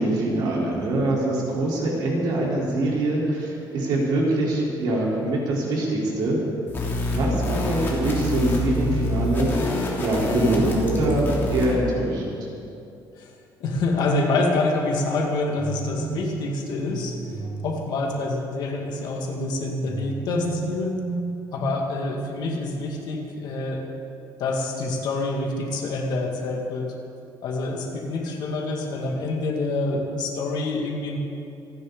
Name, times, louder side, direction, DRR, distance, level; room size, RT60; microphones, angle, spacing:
voice 1, 0.0-6.4 7.1-9.5 10.0-12.4, right 1 dB, 60° right, -4 dB, 4.0 m, -24 dB
sound 1, 6.7-11.7, left 1 dB, 25° left, 3.0 m, -26 dB
voice 2, 13.6-17.1 17.6-20.9 21.5-23.8 24.4-26.9 27.4-31.2, left 2 dB, 55° left, 0 dB, 2.2 m, -26 dB
sound 2, 15.6-18.7 19.9-22.8, right 4 dB, 40° right, 1.3 m, -34 dB
28.0 x 10.5 x 4.0 m, 2.6 s
cardioid pair, 175°, 8 cm